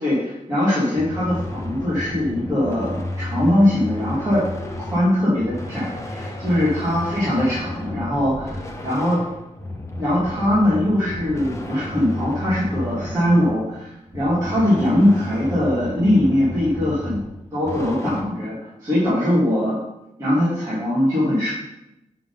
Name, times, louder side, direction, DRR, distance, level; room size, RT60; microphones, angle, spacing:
voice 1, 0.0-4.4 4.9-9.2 10.0-17.2 17.5-18.5 18.8-19.8 20.2-21.5, left 1 dB, 25° right, -10 dB, 2.0 m, -21 dB
sound 1, 0.9-18.2, left 1 dB, 20° left, 0.8 m, -32 dB
6.5 x 3.8 x 5.4 m, 0.89 s
wide cardioid pair, 175°, 13 cm